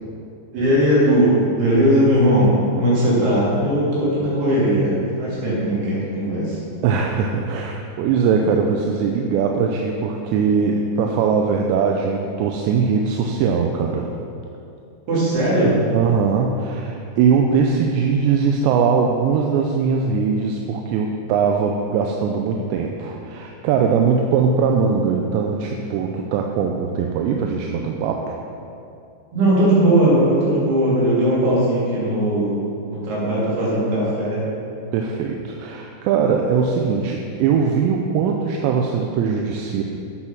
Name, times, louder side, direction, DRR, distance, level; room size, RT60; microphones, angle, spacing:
voice 1, 0.5-6.6 15.1-15.8 29.3-34.4, right 1 dB, 65° right, -7 dB, 4.9 m, -18 dB
voice 2, 6.8-14.1 15.9-28.4 34.9-39.8, right 6 dB, 85° right, 2 dB, 2.9 m, -21 dB
8.9 x 8.5 x 5.9 m, 2.6 s
omnidirectional pair, 5.0 m